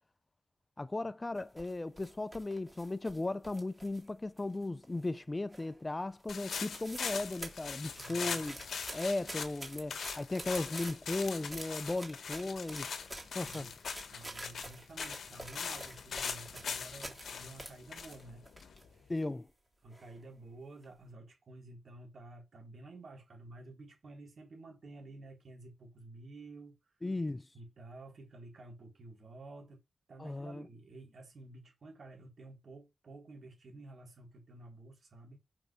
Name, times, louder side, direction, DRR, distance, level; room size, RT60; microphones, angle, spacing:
voice 1, 0.8-8.6 8.9-12.9 13.3-13.7 19.1-19.5 27.0-27.5 30.2-30.6, left 2 dB, 25° left, 0.4 m, -36 dB
sound 1, 1.4-4.1 4.4-5.2 5.5-5.9 6.2-6.3 6.5-7.1 7.4-17.3 17.6-18.8 19.2-19.3 19.9-20.2 20.6-20.8, right 1 dB, 20° right, 3.3 m, -48 dB
sound 2, 6.3-19.1, left 6 dB, 85° left, 1.4 m, -42 dB
voice 2, 8.0-8.4 13.4-13.7 14.1-18.4 19.8-26.8 27.5-29.8 30.1-35.4, right 2 dB, 65° right, 3.8 m, -51 dB
6.1 x 4.7 x 5.1 m
cardioid pair, 75°, 0 cm